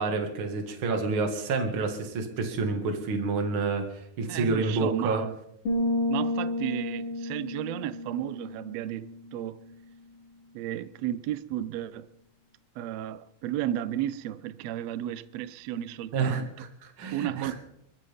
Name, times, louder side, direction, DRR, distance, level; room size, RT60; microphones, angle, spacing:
voice 1, 0.0-5.2 16.1-17.5, right 4 dB, 45° right, 2.5 m, -29 dB
voice 2, 4.3-5.3 6.1-9.6 10.5-12.1 12.7-16.5 17.1-17.6, right 12 dB, 75° right, 1.6 m, -33 dB
sound 1, 5.7-9.4, left 1 dB, 45° left, 4.9 m, -31 dB
26.5 x 14.0 x 3.6 m
omnidirectional pair, 3.6 m